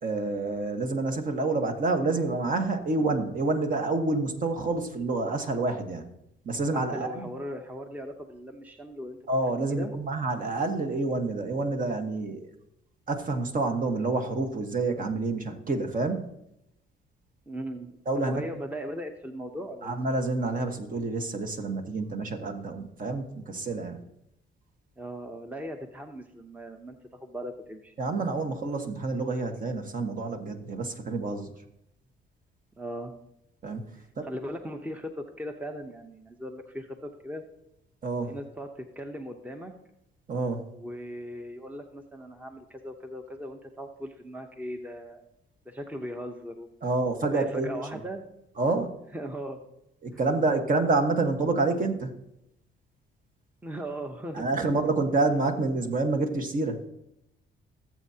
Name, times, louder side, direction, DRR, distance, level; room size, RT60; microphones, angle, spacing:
voice 1, 0.0-6.0 6.4-7.3 9.3-12.5 13.1-16.2 18.1-18.4 19.8-24.0 28.0-31.5 33.6-33.9 34.2-34.3 38.0-38.4 40.3-40.7 46.8-47.8 48.6-48.9 50.0-52.1 54.3-56.8, right 3 dB, 45° right, 5 dB, 1.4 m, -28 dB
voice 2, 6.7-9.2 9.7-9.9 17.5-20.0 25.0-27.9 32.8-33.1 34.0-37.4 38.3-39.7 40.7-45.2 45.7-47.0 47.3-48.2 49.1-49.6 50.1-50.2 53.6-54.7 55.1-55.3, equal, 10° right, 5 dB, 0.8 m, -38 dB
16.0 x 7.5 x 2.8 m, 0.82 s
cardioid pair, 90°, 20 cm